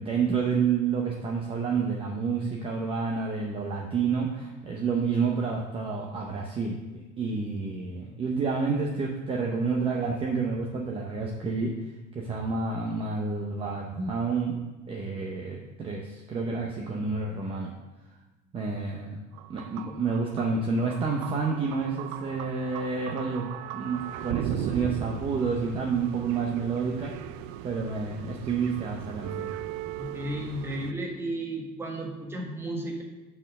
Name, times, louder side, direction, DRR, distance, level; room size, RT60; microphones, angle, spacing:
voice 1, 0.0-6.8 7.2-11.8 12.1-14.6 14.9-17.7 18.5-19.2 19.5-27.1 27.6-29.5, right 5 dB, 25° right, -1 dB, 0.7 m, -29 dB
sound 1, 19.3-30.9, right 11 dB, 80° right, 0.4 m, -38 dB
voice 2, 30.0-33.0, right 1 dB, 10° right, -1 dB, 1.2 m, -34 dB
6.1 x 4.4 x 5.4 m, 1.1 s
cardioid pair, 145°, 21 cm